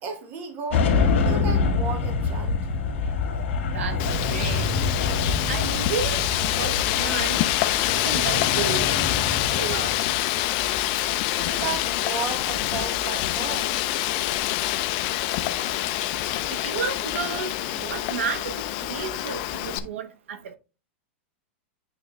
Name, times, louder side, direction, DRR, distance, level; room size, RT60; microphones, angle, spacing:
voice 1, 0.0-0.9 1.2-2.6 11.3-13.8, right 5 dB, 25° right, 1.4 m, -34 dB
sound 1, 0.7-19.9, left 4 dB, 70° left, 2.0 m, -28 dB
Wind, 4.0-19.8, left 15 dB, 40° left, 0.6 m, -26 dB
voice 2, 4.3-4.7 5.5-6.2 6.6-7.5 7.9-8.9 9.3-9.9 16.5-20.6, right 6 dB, 85° right, 1.1 m, -32 dB
8.5 x 3.6 x 3.3 m
supercardioid pair, 165°, 7 cm